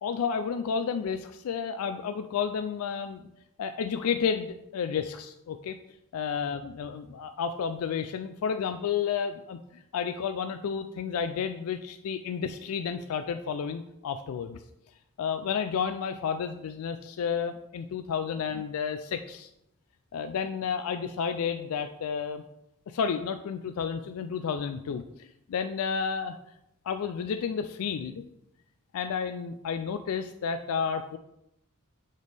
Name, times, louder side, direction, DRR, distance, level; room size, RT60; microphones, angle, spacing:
voice 1, 0.0-3.2 3.6-5.8 6.1-14.6 15.2-19.5 20.1-22.4 22.9-26.4 26.8-28.2 28.9-31.2, left 6 dB, 75° left, 9 dB, 0.3 m, -31 dB
6.5 x 5.2 x 3.4 m, 0.83 s
head